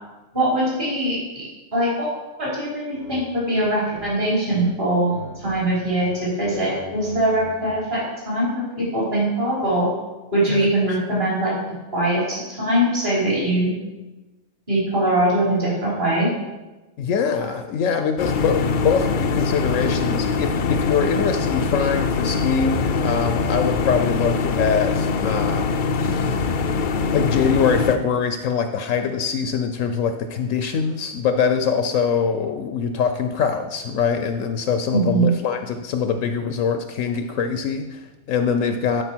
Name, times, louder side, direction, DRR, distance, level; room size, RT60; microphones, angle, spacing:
voice 1, 0.3-1.4 1.7-2.1 2.4-8.6 8.9-9.9 10.3-11.5 11.9-13.7 14.7-16.3 34.9-35.3, right 1 dB, 35° right, -7 dB, 3.9 m, -22 dB
sound 1, 2.9-3.2 3.5-4.6 4.9-5.6 5.9-7.8, right 3 dB, 90° right, 3.4 m, -40 dB
voice 2, 10.5-11.0 17.0-26.5 27.1-39.0, left 6 dB, 75° left, 7 dB, 1.0 m, -23 dB
sound 2, 18.2-28.0, left 4 dB, 55° left, 0.5 m, -23 dB
12.0 x 5.1 x 4.4 m, 1.1 s
omnidirectional pair, 1.4 m